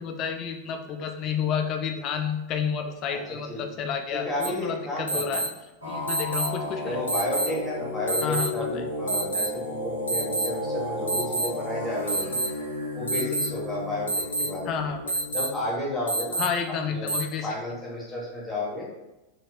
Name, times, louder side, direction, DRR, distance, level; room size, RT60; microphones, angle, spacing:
voice 1, 0.0-5.4 5.8-7.0 8.2-8.8 14.7-15.2 16.4-17.5, left 7 dB, 35° left, 5 dB, 0.4 m, -30 dB
voice 2, 4.1-5.4 6.8-12.4 12.9-14.8 15.3-16.4 16.9-17.1 17.4-18.9, left 1 dB, 5° left, -5 dB, 1.2 m, -32 dB
sound 1, 4.4-4.5 5.1-5.5 6.1-6.5 7.1-7.5 8.1-8.5 9.1-9.5 10.1-10.5 11.1-11.5 12.1-12.5 13.1-13.5 14.1-14.5 15.1-15.5 16.1-16.5 17.1-17.2, right 3 dB, 75° left, 0.8 m, -27 dB
sound 2, 5.8-15.6, left 2 dB, 85° right, 0.9 m, -33 dB
3.1 x 2.9 x 2.9 m, 0.99 s
figure-of-eight pair, 90°, 0 cm